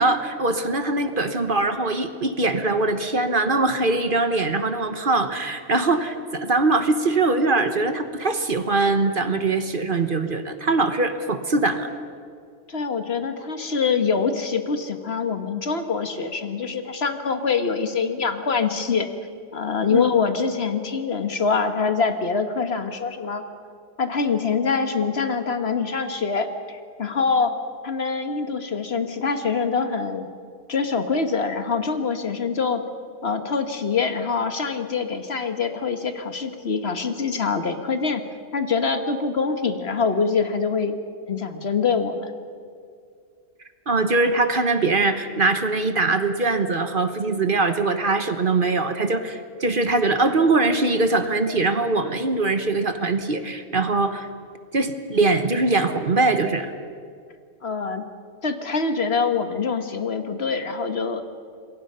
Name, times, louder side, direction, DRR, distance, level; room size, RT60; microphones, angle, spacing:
voice 1, 0.0-11.9 19.9-20.0 43.9-54.3 54.7-56.7, right 3 dB, 45° right, 8 dB, 1.3 m, -22 dB
voice 2, 12.7-19.1 19.5-23.4 24.0-27.5 27.8-30.3 30.7-32.8 33.2-38.2 38.5-41.0 41.3-42.3 57.6-58.0 58.4-61.2, left 5 dB, 55° left, 8 dB, 1.5 m, -24 dB
27.0 x 22.5 x 5.6 m, 2.3 s
omnidirectional pair, 1.3 m